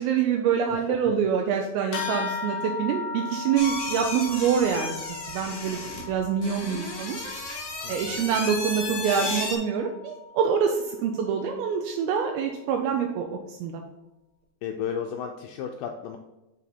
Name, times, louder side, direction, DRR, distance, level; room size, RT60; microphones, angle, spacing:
voice 1, 0.0-4.9 5.3-7.2 7.9-13.8, right 7 dB, 80° right, 2 dB, 2.5 m, -26 dB
voice 2, 0.7-1.1 7.8-8.2 14.6-16.2, left 8 dB, 90° left, 3 dB, 1.9 m, -34 dB
sound 1, 1.9-11.7, left 5 dB, 70° left, 2.7 m, -38 dB
sound 2, 3.5-9.5, left 2 dB, 35° left, 1.3 m, -34 dB
9.1 x 4.0 x 4.3 m, 0.99 s
omnidirectional pair, 4.5 m